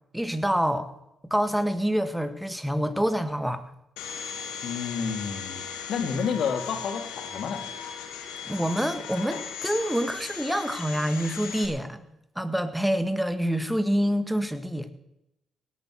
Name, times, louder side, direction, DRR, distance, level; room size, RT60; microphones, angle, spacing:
voice 1, 0.1-0.9 1.2-3.7 8.4-12.0 12.4-14.9, equal, 5° right, 10 dB, 1.8 m, -26 dB
Domestic sounds home sounds, 4.0-11.7, left 7 dB, 85° left, 2.0 m, -37 dB
voice 2, 4.6-5.6 5.9-7.6, left 6 dB, 65° left, 7 dB, 2.2 m, -30 dB
18.0 x 9.4 x 6.3 m, 0.85 s
supercardioid pair, 55°, 0 cm